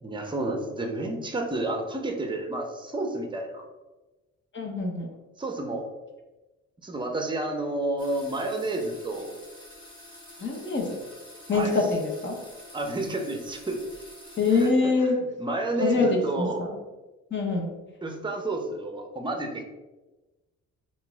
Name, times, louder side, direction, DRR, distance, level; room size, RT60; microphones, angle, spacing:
voice 1, 0.0-3.7 5.4-5.9 6.8-9.3 11.5-11.7 12.7-13.8 14.5-14.7 15.0-16.6 18.0-19.6, right 2 dB, 15° right, 4 dB, 0.6 m, -30 dB
voice 2, 4.5-5.1 10.4-11.0 11.5-12.4 14.4-15.2 15.8-16.7 17.3-17.8, left 3 dB, 40° left, 1 dB, 0.8 m, -25 dB
sound 1, 8.0-14.7, left 1 dB, 15° left, 1.2 m, -48 dB
3.9 x 2.5 x 3.4 m, 1.1 s
cardioid pair, 90°, 30 cm